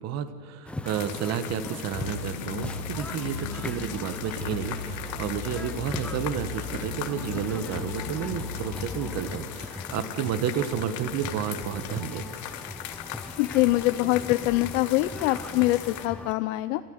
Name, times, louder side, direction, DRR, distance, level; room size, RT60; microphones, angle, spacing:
voice 1, 0.0-12.2, right 8 dB, 35° right, 12 dB, 1.3 m, -31 dB
sound 1, 0.7-16.3, left 2 dB, 5° left, 0.5 m, -39 dB
sound 2, 0.9-16.1, left 12 dB, 40° left, 1.6 m, -40 dB
sound 3, 1.9-9.2, left 5 dB, 85° left, 2.9 m, -37 dB
voice 2, 13.4-16.8, left 18 dB, 60° left, 11 dB, 0.7 m, -24 dB
27.0 x 14.0 x 8.0 m, 2.3 s
supercardioid pair, 130°, 44 cm